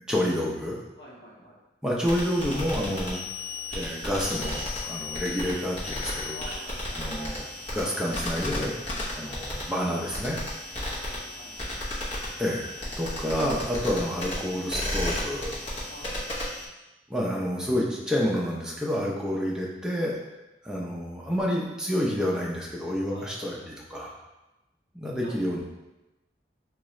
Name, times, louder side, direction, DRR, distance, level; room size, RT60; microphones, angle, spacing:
voice 1, 0.1-0.8 1.8-3.2 3.7-6.4 7.0-8.8 9.2-10.4 12.4-12.7 13.0-15.5 17.1-20.1 20.6-23.6 23.9-24.1 24.9-25.6, equal, 5° right, -4 dB, 0.5 m, -29 dB
voice 2, 1.0-1.6 6.3-7.0 10.8-11.8 15.8-16.2 23.1-23.5 25.2-25.4, equal, 70° left, -5 dB, 1.0 m, -47 dB
sound 1, 2.0-16.7, left 1 dB, 30° left, 1.0 m, -34 dB
3.9 x 2.3 x 3.1 m, 1.0 s
head